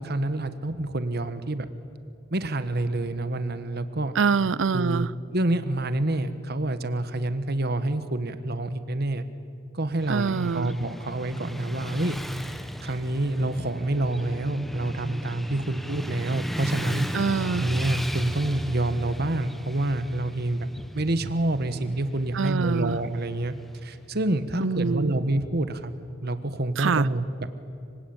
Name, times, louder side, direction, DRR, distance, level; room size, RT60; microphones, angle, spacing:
voice 1, 0.0-1.7 2.3-4.2 4.7-9.2 9.7-12.2 12.8-17.1 17.6-20.7 20.9-23.5 23.8-25.9 26.2-27.2, right 2 dB, 55° right, 11 dB, 1.4 m, -27 dB
voice 2, 4.2-5.1 10.1-10.7 17.1-17.7 22.3-23.0 24.6-25.1 26.8-27.1, right 5 dB, 70° right, 20 dB, 0.6 m, -25 dB
Motorcycle / Traffic noise roadway noise, 10.0-24.1, equal, ahead, 1.0 m, -35 dB
25.5 x 25.0 x 8.9 m, 2.5 s
head